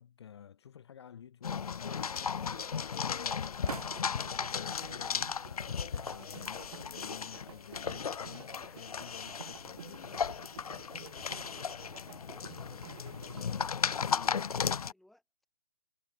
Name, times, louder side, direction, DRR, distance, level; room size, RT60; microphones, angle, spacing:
voice 1, 0.0-10.5, left 8 dB, 50° left, 0.8 m, -51 dB
sound 1, 1.4-14.9, left 6 dB, 90° left, 0.8 m, -36 dB
sound 2, 1.9-4.4 4.8-5.7 6.6-7.0 7.3-8.1, right 6 dB, 85° right, 1.7 m, -49 dB
sound 3, 3.6-13.9, right 8 dB, 50° right, 1.9 m, -52 dB
voice 2, 11.9-12.8 13.3-13.9 14.2-15.5, left 1 dB, ahead, 1.8 m, -65 dB
hypercardioid pair, 165°, 18 cm